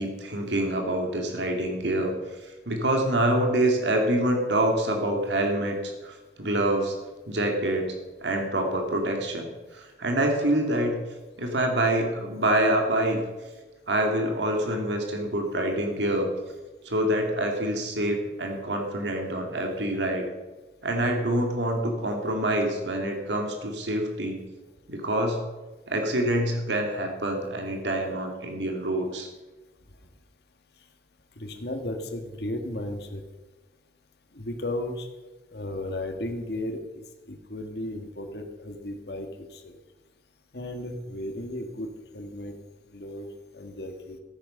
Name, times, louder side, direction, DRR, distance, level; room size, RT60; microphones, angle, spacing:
voice 1, 0.0-2.1 2.4-6.9 7.3-7.9 8.2-11.0 11.4-13.2 13.9-16.3 16.8-20.2 20.8-24.4 24.9-25.4 25.9-29.3, right 1 dB, 75° right, 3 dB, 2.3 m, -26 dB
voice 2, 31.4-33.2 34.3-35.1 35.5-36.8 37.3-39.7 40.5-41.9 42.1-42.5 42.9-43.3 43.5-44.2, left 1 dB, 60° left, 5 dB, 1.6 m, -34 dB
14.5 x 9.0 x 6.5 m, 1.2 s
head